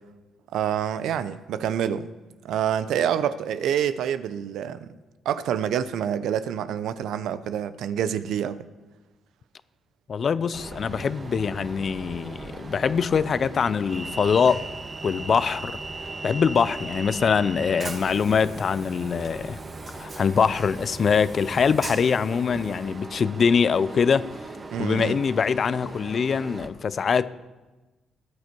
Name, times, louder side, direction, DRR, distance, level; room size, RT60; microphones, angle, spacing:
voice 1, 0.5-2.1 2.4-4.9 5.3-8.6 24.7-25.2, right 9 dB, 80° right, 0.6 m, -27 dB
voice 2, 10.1-14.6 15.0-15.8 16.2-19.6 19.9-24.3 24.8-27.3, left 6 dB, 50° left, 0.6 m, -23 dB
Train, 10.5-26.7, right 3 dB, 35° right, 1.5 m, -38 dB
17.5 x 8.5 x 4.6 m
cardioid pair, 90°, 0 cm